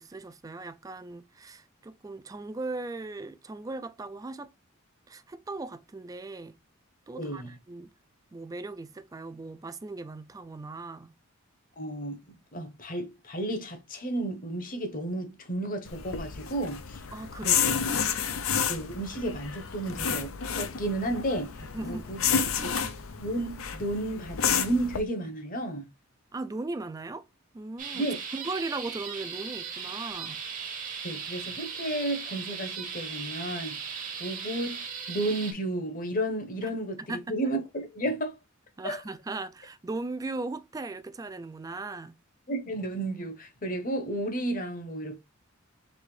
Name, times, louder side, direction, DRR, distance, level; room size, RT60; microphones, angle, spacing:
voice 1, 0.0-4.5 5.1-6.6 7.1-7.9 8.3-11.1 17.1-18.4 21.6-22.8 26.3-27.2 27.5-28.1 28.3-30.4 37.0-37.4 38.8-42.2, right 3 dB, 15° right, 0.3 m, -38 dB
voice 2, 7.2-7.5 11.8-17.0 17.4-17.6 18.7-21.5 21.8-22.2 22.6-22.8 23.2-25.9 27.9-28.2 31.0-33.8 34.2-37.0 37.3-38.4 38.8-39.0 42.5-45.2, right 1 dB, 40° left, 0.9 m, -32 dB
sound 1, 15.8-25.0, left 7 dB, 80° left, 0.6 m, -30 dB
sound 2, 27.8-35.5, right 6 dB, 40° right, 0.9 m, -37 dB
4.1 x 3.1 x 3.1 m
head